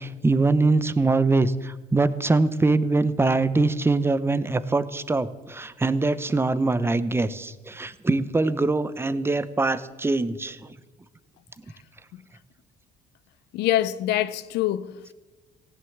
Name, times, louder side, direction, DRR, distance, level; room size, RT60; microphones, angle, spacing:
voice 1, 0.0-10.7, right 3 dB, 15° right, 0.8 m, -23 dB
voice 2, 13.5-15.1, left 13 dB, 80° left, 0.6 m, -25 dB
16.0 x 11.0 x 7.2 m
cardioid pair, 110°, 17 cm